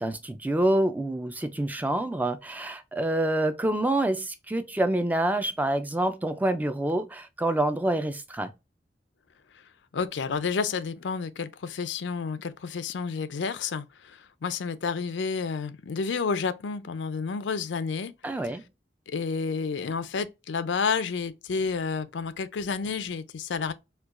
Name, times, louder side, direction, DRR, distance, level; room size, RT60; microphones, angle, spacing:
voice 1, 0.0-8.5 18.2-18.6, right 1 dB, 10° right, 0.3 m, -27 dB
voice 2, 9.9-18.1 19.1-23.7, left 5 dB, 90° left, 0.5 m, -30 dB
4.4 x 2.2 x 2.4 m
head